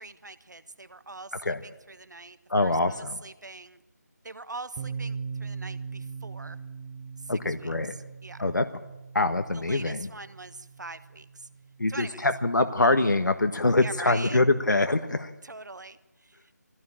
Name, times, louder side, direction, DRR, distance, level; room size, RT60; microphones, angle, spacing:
voice 1, 0.0-2.4 2.6-3.8 4.2-6.6 7.6-7.7 8.2-8.4 9.5-11.5 11.9-12.3 13.8-14.4 15.4-16.6, right 3 dB, 75° right, 12 dB, 1.4 m, -42 dB
voice 2, 2.5-3.2 7.3-7.9 8.4-8.6 9.1-10.1 11.8-15.3, left 2 dB, 85° left, 7 dB, 1.4 m, -24 dB
sound 1, 4.8-12.4, right 5 dB, 10° right, 0.6 m, -40 dB
21.5 x 16.0 x 8.8 m, 1.0 s
figure-of-eight pair, 170°, 10 cm